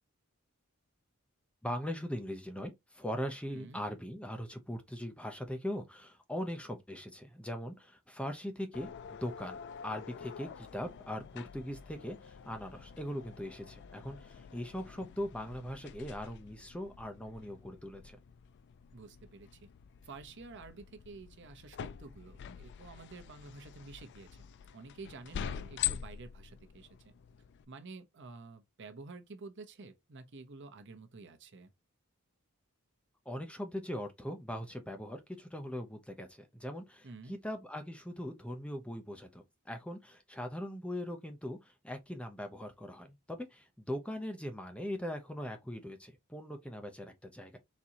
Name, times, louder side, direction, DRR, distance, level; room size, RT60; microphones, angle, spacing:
voice 1, 1.6-9.6 9.8-18.2 33.3-47.6, equal, 5° left, 0.6 m, -40 dB
sound 1, 8.7-27.6, left 9 dB, 55° left, 0.3 m, -45 dB
voice 2, 18.9-19.7 20.1-24.3 24.7-27.1 27.7-31.7 37.0-37.4, right 3 dB, 55° right, 0.8 m, -50 dB
4.2 x 3.7 x 2.8 m
head